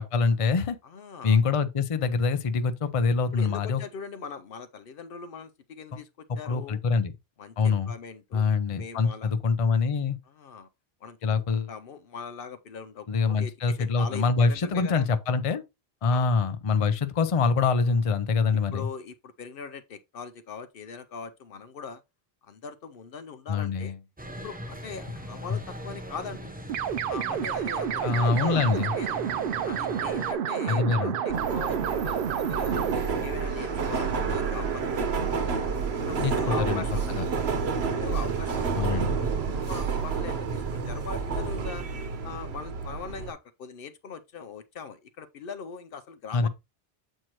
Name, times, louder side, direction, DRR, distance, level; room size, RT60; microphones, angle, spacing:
voice 1, 0.0-0.8 1.2-3.8 6.5-7.1 7.6-7.9 8.3-10.2 11.2-11.7 13.1-15.6 16.0-18.9 23.5-24.0 28.0-28.9 30.7-31.1 36.2-36.3 36.7-36.8 37.2-37.3 38.7-39.2 46.3-46.5, left 5 dB, 40° left, 0.6 m, -25 dB
voice 2, 0.8-1.4 3.3-6.8 7.4-9.3 10.3-10.7 11.0-15.2 16.1-16.3 18.5-22.0 22.4-23.9 24.4-26.5 27.1-29.2 29.6-32.8 33.2-35.6 36.0-37.1 38.0-38.8 39.1-39.3 39.6-41.8 42.2-46.5, left 5 dB, 65° left, 0.8 m, -41 dB
sound 1, 24.2-30.3, equal, 10° right, 0.6 m, -40 dB
sound 2, 26.7-33.0, right 8 dB, 65° right, 0.7 m, -29 dB
Subway metro underground, 31.3-43.3, right 5 dB, 80° right, 1.2 m, -29 dB
7.6 x 4.5 x 2.9 m
omnidirectional pair, 1.0 m